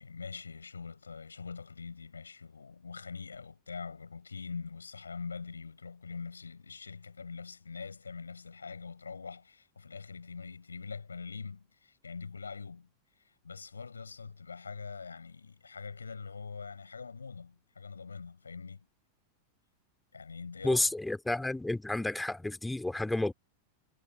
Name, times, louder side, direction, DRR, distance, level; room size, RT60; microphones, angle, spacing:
voice 1, 0.0-12.9 13.2-18.9 20.1-20.9, left 5 dB, 75° left, 5.9 m, -43 dB
voice 2, 20.6-23.3, left 2 dB, 5° left, 2.6 m, -31 dB
figure-of-eight pair, 90°, 0 cm